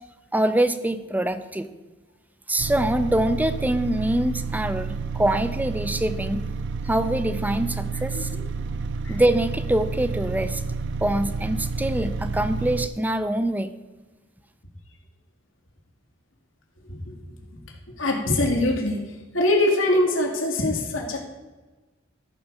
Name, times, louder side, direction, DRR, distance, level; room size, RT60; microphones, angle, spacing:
voice 1, 0.3-1.7 2.5-6.4 6.8-8.3 9.1-10.6 11.0-13.7, right 1 dB, 10° right, 11 dB, 0.6 m, -24 dB
sound 1, 2.6-12.9, right 4 dB, 65° right, 0.5 m, -30 dB
voice 2, 18.0-19.0 19.3-21.2, left 1 dB, 90° left, 1 dB, 2.3 m, -23 dB
14.0 x 4.7 x 6.7 m, 1.2 s
head